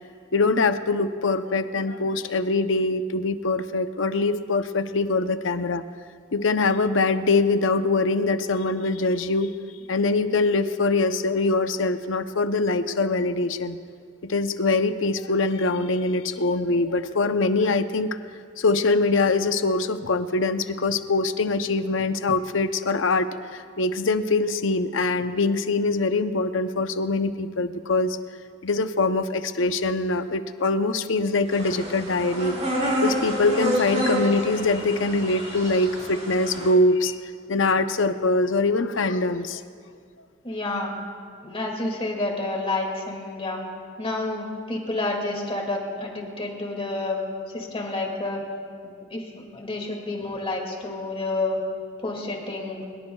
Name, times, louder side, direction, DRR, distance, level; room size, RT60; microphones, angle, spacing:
voice 1, 0.3-5.8 6.3-9.5 9.9-13.8 14.2-18.1 18.6-28.2 28.6-37.2 37.5-39.6, left 3 dB, 75° left, 9 dB, 0.7 m, -23 dB
sound 1, 31.5-36.7, equal, 35° right, 4.6 m, -28 dB
voice 2, 40.4-40.9 41.4-43.6 44.0-47.2 47.5-48.4 48.8-51.6 52.0-52.8, left 2 dB, 30° left, 0 dB, 2.2 m, -29 dB
22.0 x 21.5 x 2.3 m, 2.1 s
head